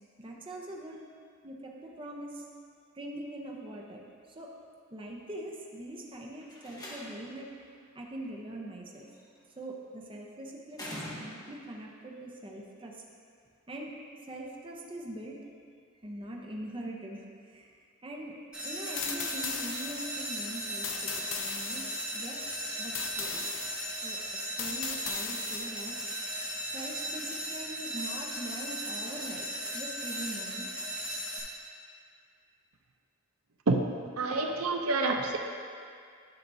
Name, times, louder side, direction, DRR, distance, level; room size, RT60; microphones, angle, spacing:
voice 1, 0.2-1.0 1.4-2.4 2.9-4.0 4.3-4.5 4.9-7.5 7.9-9.1 9.6-13.0 13.7-13.9 14.3-15.4 16.0-17.7 18.0-18.4 18.6-23.4 24.0-24.2 24.6-26.0 26.7-30.9, right 1 dB, 25° right, -1 dB, 0.7 m, -42 dB
Slam, 6.4-7.4 8.9-9.4 10.7-11.7, left 1 dB, 20° left, 1.1 m, -43 dB
sound 1, 18.5-31.4, equal, 5° right, 1.7 m, -37 dB
sound 2, 19.0-26.1, left 7 dB, 65° left, 0.6 m, -39 dB
voice 2, 34.2-35.4, right 3 dB, 85° right, 3 dB, 0.6 m, -27 dB
10.5 x 5.9 x 2.7 m, 2.2 s
head